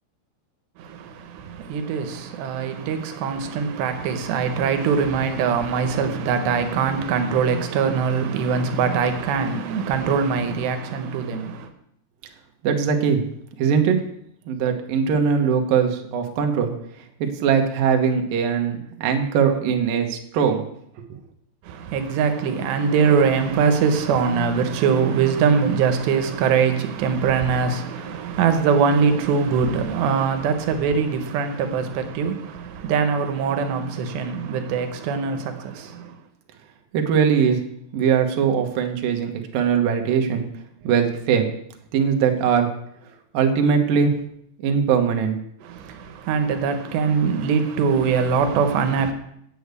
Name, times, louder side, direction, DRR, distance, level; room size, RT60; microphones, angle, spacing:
voice 1, 0.8-11.7 21.7-36.2 45.6-49.1, right 6 dB, 85° right, 3.2 m, -22 dB
voice 2, 12.6-13.2 13.6-14.0 14.5-16.7 17.2-20.7 36.9-37.6 37.9-40.4 40.8-41.5 41.9-42.7 43.3-44.1 44.6-45.4, right 7 dB, 65° right, 2.7 m, -20 dB
8.7 x 8.0 x 8.2 m
omnidirectional pair, 4.8 m